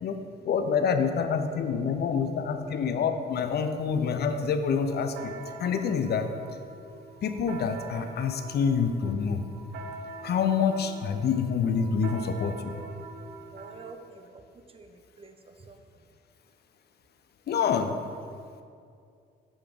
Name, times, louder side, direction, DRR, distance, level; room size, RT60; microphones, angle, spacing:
voice 1, 0.0-5.3 5.6-6.3 7.2-9.4 10.2-12.7 17.5-18.0, left 6 dB, 55° left, 8 dB, 0.5 m, -27 dB
sound 1, 4.8-13.9, right 3 dB, 85° right, 0.5 m, -44 dB
voice 2, 13.5-14.4 14.7-15.8, right 4 dB, 30° right, 7 dB, 0.5 m, -48 dB
7.0 x 3.5 x 5.0 m, 2.4 s
cardioid pair, 90°, 20 cm